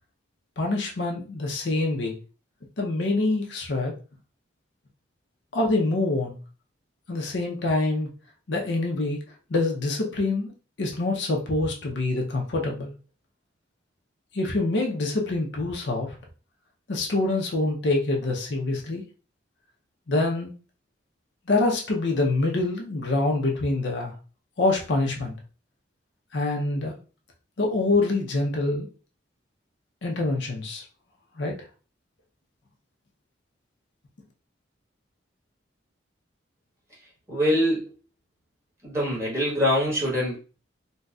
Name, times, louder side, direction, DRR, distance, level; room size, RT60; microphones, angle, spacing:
voice 1, 0.6-2.2 2.8-3.9 5.5-6.4 7.1-8.1 8.5-9.2 9.5-10.5 10.8-12.9 14.3-16.1 16.9-19.0 20.1-20.5 21.5-24.1 24.6-25.3 26.3-27.0 27.6-28.9 30.0-30.8 31.4-31.5, left 2 dB, 70° left, 0 dB, 0.7 m, -25 dB
voice 2, 37.3-37.8 38.8-40.4, equal, 15° right, -6 dB, 1.3 m, -24 dB
4.0 x 2.2 x 2.3 m, 0.36 s
head